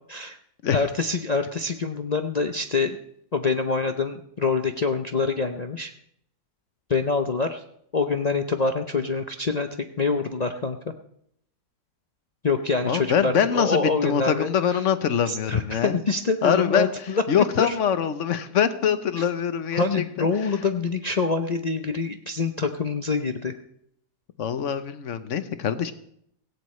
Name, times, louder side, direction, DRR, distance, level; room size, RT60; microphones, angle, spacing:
voice 1, 0.7-3.0 3.3-5.9 6.9-7.6 7.9-10.8 12.4-14.5 15.3-17.8 19.2-19.3 19.7-23.5, left 4 dB, 70° left, 6 dB, 0.4 m, -25 dB
voice 2, 12.8-16.0 16.4-20.3 24.4-25.9, left 8 dB, 55° left, 11 dB, 1.1 m, -24 dB
17.5 x 16.0 x 3.2 m, 0.72 s
omnidirectional pair, 1.8 m